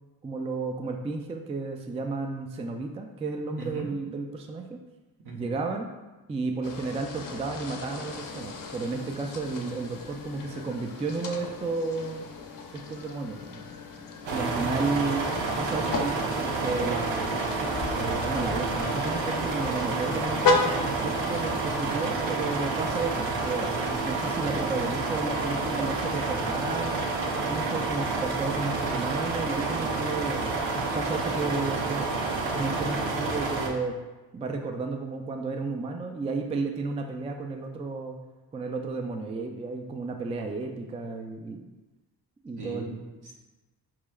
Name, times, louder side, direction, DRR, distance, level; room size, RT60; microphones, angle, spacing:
voice 1, 0.2-4.8 5.3-5.9 6.3-12.3 12.7-13.6 14.3-15.3 15.6-17.3 17.9-27.0 27.3-32.1 32.5-34.0 34.3-38.2 38.5-41.6 42.4-43.0, right 3 dB, 15° right, 3 dB, 0.3 m, -32 dB
voice 2, 3.6-3.9 5.2-5.5 14.3-14.8 42.6-43.3, right 3 dB, 60° right, -1 dB, 0.9 m, -38 dB
sound 1, 6.6-21.9, left 4 dB, 50° left, 0.6 m, -35 dB
sound 2, 14.3-33.7, right 3 dB, 85° right, 0.7 m, -29 dB
4.7 x 3.1 x 2.3 m, 1.1 s
supercardioid pair, 45°, 44 cm